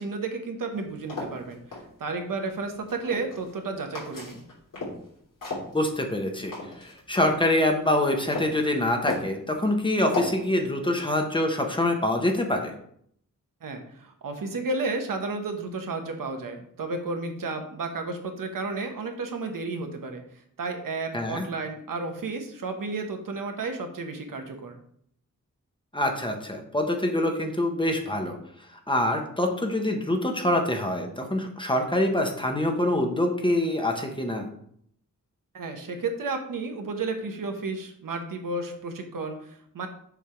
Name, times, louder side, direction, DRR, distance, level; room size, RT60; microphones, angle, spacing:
voice 1, 0.0-1.6 2.0-4.4 13.6-24.8 35.5-39.9, right 3 dB, 80° right, 5 dB, 1.1 m, -32 dB
sound 1, 0.7-1.8 2.7-3.6 3.9-5.1 5.4-7.4 7.8-8.6 9.1-9.4 10.1-10.5, left 3 dB, 80° left, 3.2 m, -34 dB
voice 2, 5.7-6.5 6.8-12.7 21.1-21.5 25.9-28.4 28.9-34.5, left 1 dB, 15° left, 3 dB, 0.9 m, -25 dB
7.1 x 3.4 x 5.8 m, 0.67 s
wide cardioid pair, 155°, 32 cm